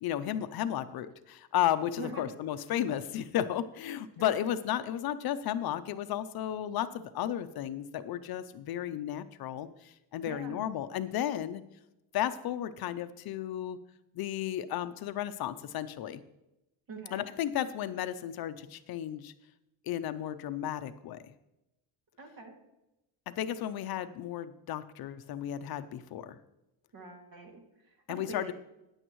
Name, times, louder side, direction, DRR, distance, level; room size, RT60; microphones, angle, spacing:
voice 1, 0.0-11.6 12.1-13.8 14.2-16.2 17.1-19.3 19.9-21.2 23.3-26.4 28.1-28.5, left 11 dB, 55° left, 11 dB, 0.6 m, -34 dB
voice 2, 2.0-2.3 4.2-4.5 10.2-10.6 16.9-17.3 22.2-22.6 26.9-28.5, right 3 dB, 50° right, 2 dB, 2.4 m, -45 dB
14.5 x 10.0 x 3.1 m, 0.91 s
cardioid pair, 170°, 45 cm